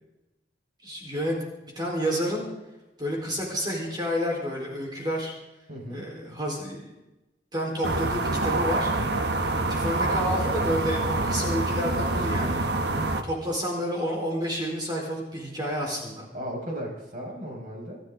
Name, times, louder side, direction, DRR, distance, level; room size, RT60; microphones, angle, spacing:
voice 1, 0.8-1.3 1.8-2.5 3.0-5.3 5.9-6.9 7.5-8.9 9.7-12.7 13.2-16.3, equal, 25° right, -1 dB, 4.2 m, -30 dB
voice 2, 5.7-6.1 16.3-18.0, equal, 50° right, 0 dB, 5.6 m, -36 dB
sound 1, 7.8-13.2, right 2 dB, 65° right, 1.2 m, -26 dB
27.0 x 13.0 x 3.8 m, 0.98 s
head